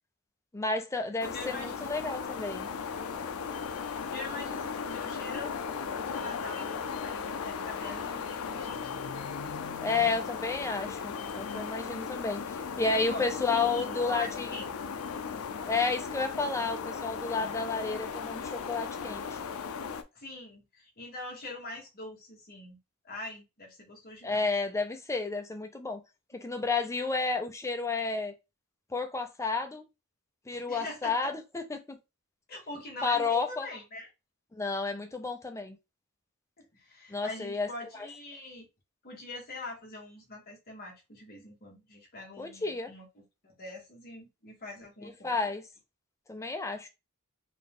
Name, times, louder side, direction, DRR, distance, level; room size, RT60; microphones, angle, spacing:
voice 1, 0.5-2.7 9.8-14.6 15.7-19.4 24.2-26.0 26.3-28.3 28.9-29.8 30.5-32.0 33.0-33.7 34.5-35.8 37.1-37.7 38.0-38.1 42.4-42.9 45.0-45.6 46.3-46.9, left 4 dB, 15° left, 0.5 m, -31 dB
sound 1, 1.2-20.0, left 6 dB, 65° left, 0.5 m, -37 dB
voice 2, 1.3-1.7 3.8-5.6 6.0-9.0 9.9-10.2 13.1-14.7 20.1-22.8 23.0-24.5 30.7-31.3 32.5-34.1 36.6-38.7 39.0-45.5, left 2 dB, 45° left, 1.4 m, -44 dB
3.9 x 2.4 x 3.6 m
head